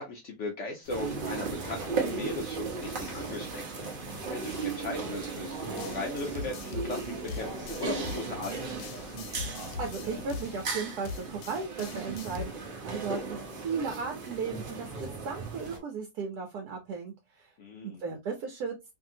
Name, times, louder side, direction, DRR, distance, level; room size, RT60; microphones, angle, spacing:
voice 1, 0.0-8.9 17.6-18.0, left 3 dB, 65° left, 2 dB, 0.7 m, -38 dB
sound 1, 0.8-10.3, left 3 dB, 50° left, 1.1 m, -51 dB
sound 2, 0.9-15.8, right 4 dB, 50° right, 0.6 m, -36 dB
sound 3, 5.8-12.5, left 5 dB, 85° left, 1.2 m, -42 dB
voice 2, 9.6-17.5 17.8-18.8, right 5 dB, 70° right, 2 dB, 1.1 m, -36 dB
2.8 x 2.6 x 2.6 m, 0.21 s
omnidirectional pair, 1.8 m